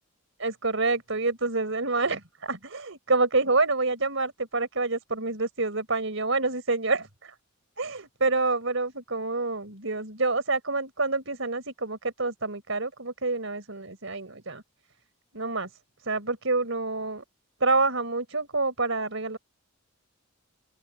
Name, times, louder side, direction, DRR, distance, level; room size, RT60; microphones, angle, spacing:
voice 1, 0.4-7.3 7.8-14.6 15.3-15.7 16.0-17.2 17.6-19.4, right 3 dB, 65° right, 5.0 m, -27 dB
open air
head